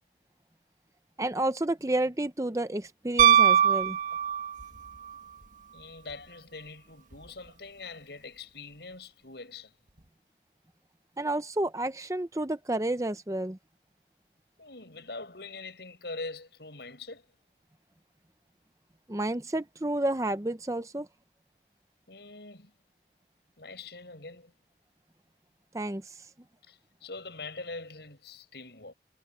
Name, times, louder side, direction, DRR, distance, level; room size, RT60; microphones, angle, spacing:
voice 1, 1.2-4.0 11.2-13.6 19.1-21.1 25.7-26.0, right 1 dB, 20° right, 0.6 m, -30 dB
Piano, 3.2-4.8 7.1-7.2, right 9 dB, 45° right, 1.6 m, -21 dB
voice 2, 5.7-9.7 14.6-17.3 22.1-22.7 23.6-24.5 26.7-28.9, left 3 dB, 70° left, 6.5 m, -43 dB
head